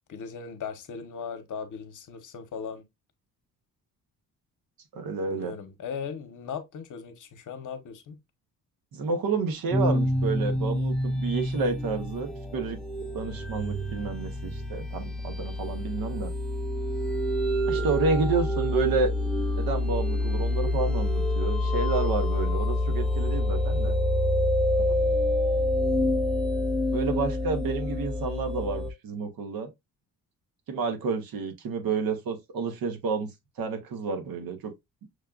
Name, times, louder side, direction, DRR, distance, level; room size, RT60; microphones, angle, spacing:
voice 1, 0.1-2.8 5.3-8.2, left 6 dB, 60° left, 0.9 m, -38 dB
voice 2, 4.9-5.5 8.9-12.8 13.1-16.3 17.7-19.1 19.6-23.9 24.8-24.9 26.9-29.7 30.7-33.3 33.6-34.7, right 4 dB, 75° right, 1.0 m, -30 dB
sound 1, 9.7-28.9, left 1 dB, ahead, 0.4 m, -27 dB
6.3 x 2.3 x 2.3 m
cardioid pair, 125°, 36 cm